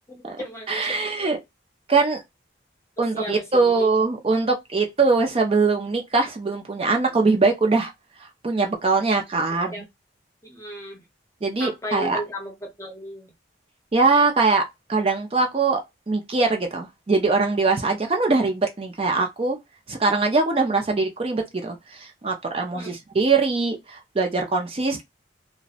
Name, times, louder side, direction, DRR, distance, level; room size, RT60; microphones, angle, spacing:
voice 1, 0.1-1.0 3.1-3.9 9.5-9.8 10.4-11.0 11.6-13.3 22.7-23.0, right 1 dB, 15° left, 0.7 m, -35 dB
voice 2, 0.7-1.4 1.9-2.2 3.0-7.9 8.4-9.7 11.4-12.2 13.9-15.8 16.1-19.6 19.9-25.0, right 3 dB, 30° right, 0.4 m, -22 dB
2.6 x 2.0 x 2.4 m
head